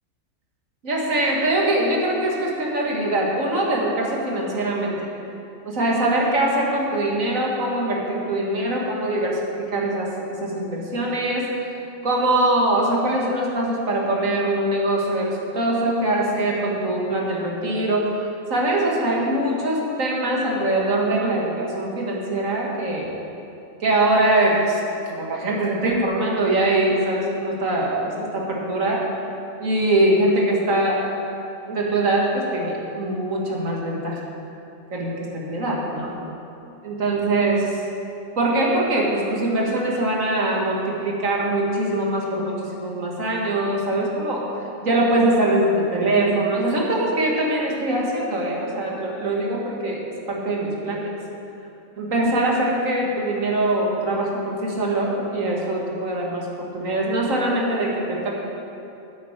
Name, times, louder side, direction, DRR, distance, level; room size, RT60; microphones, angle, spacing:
voice 1, 0.8-5.1 5.6-9.4 9.7-10.1 10.4-11.5 12.0-23.1 23.8-24.8 25.1-29.1 29.6-31.1 31.7-34.3 34.9-36.1 36.8-37.8 38.4-51.1 52.0-58.3, right 1 dB, 75° right, -2 dB, 2.4 m, -22 dB
10.0 x 8.5 x 8.9 m, 2.7 s
omnidirectional pair, 1.4 m